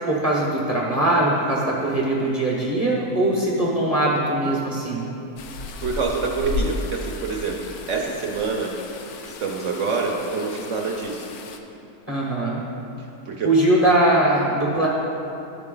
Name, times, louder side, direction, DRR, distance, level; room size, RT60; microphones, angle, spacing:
voice 1, 0.1-5.0 12.1-12.6 13.4-14.9, right 1 dB, 15° right, -4 dB, 0.6 m, -21 dB
sound 1, 5.4-11.6, left 3 dB, 75° left, 1.1 m, -34 dB
voice 2, 5.8-8.7 9.2-11.3 13.0-13.5, right 4 dB, 60° right, 0 dB, 0.9 m, -26 dB
12.0 x 4.4 x 3.8 m, 2.8 s
omnidirectional pair, 1.7 m